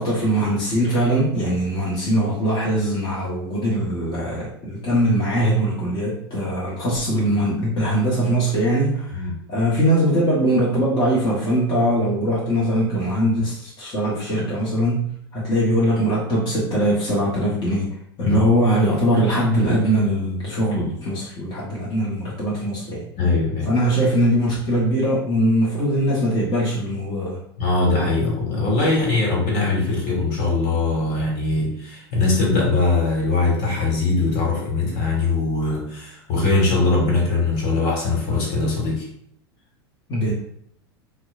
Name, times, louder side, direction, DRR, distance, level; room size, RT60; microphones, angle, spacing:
voice 1, 0.0-17.9 18.2-23.1 23.7-27.4 40.1-40.3, equal, 35° left, -6 dB, 1.1 m, -21 dB
voice 2, 23.2-23.7 27.6-39.1, left 3 dB, 55° left, -2 dB, 1.5 m, -21 dB
4.4 x 2.2 x 2.4 m, 0.68 s
hypercardioid pair, 85°, 13 cm